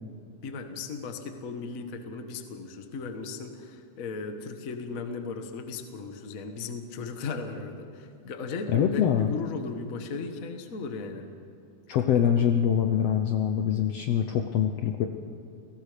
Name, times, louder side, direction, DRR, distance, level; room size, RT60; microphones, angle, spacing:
voice 1, 0.4-11.3, left 4 dB, 50° left, 6 dB, 0.9 m, -36 dB
voice 2, 8.7-9.3 11.9-15.1, left 9 dB, 70° left, 5 dB, 1.6 m, -24 dB
30.0 x 18.0 x 5.1 m, 2.4 s
omnidirectional pair, 3.7 m